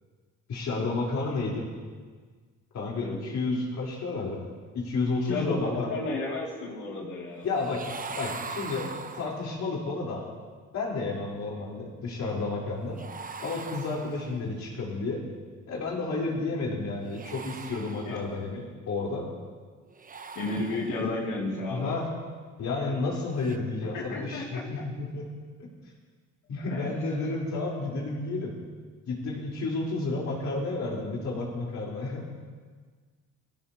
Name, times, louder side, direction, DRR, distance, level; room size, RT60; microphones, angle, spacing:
voice 1, 0.5-1.7 2.7-4.4 4.7-6.0 7.4-7.8 8.1-10.2 10.7-13.0 13.4-15.2 15.7-19.3 21.7-22.1 22.6-25.3 26.5-28.5 29.1-32.2, left 3 dB, 65° left, -4 dB, 4.1 m, -31 dB
voice 2, 5.2-7.5 18.0-18.2 20.3-21.9 23.9-24.6 26.6-26.9, left 2 dB, 85° left, -4 dB, 2.7 m, -32 dB
sound 1, 7.6-9.7 12.9-14.6 17.0-18.5 19.9-21.3 23.3-23.6, right 5 dB, 30° right, 0.8 m, -41 dB
18.0 x 15.5 x 2.9 m, 1.5 s
cardioid pair, 90°, 30 cm